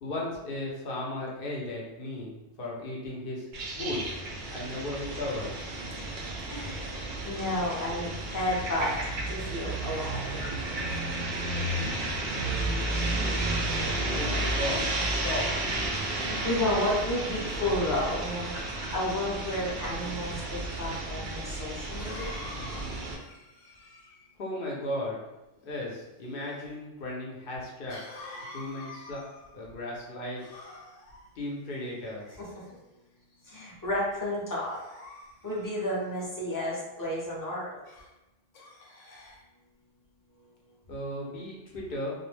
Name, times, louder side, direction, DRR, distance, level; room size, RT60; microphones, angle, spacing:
voice 1, 0.0-4.2 4.4-5.5 12.3-13.8 14.2-14.8 15.2-15.5 24.4-25.2 25.6-28.0 28.5-29.2 29.5-30.4 31.4-32.3 40.9-42.1, left 1 dB, 55° left, -3 dB, 0.8 m, -36 dB
sound 1, 3.5-23.2, right 2 dB, 60° right, 0.5 m, -32 dB
voice 2, 7.2-8.9 9.3-10.4 16.1-22.3 33.5-34.8 35.4-37.7, left 1 dB, 25° left, -6 dB, 0.5 m, -31 dB
Cough, 20.9-21.0 22.0-24.4 27.9-29.7 30.4-31.2 32.0-32.7 33.3-33.6 34.6-36.2 37.8-38.1 38.5-39.4, left 2 dB, 90° left, 1.0 m, -47 dB
2.4 x 2.1 x 3.2 m, 0.99 s
omnidirectional pair, 1.3 m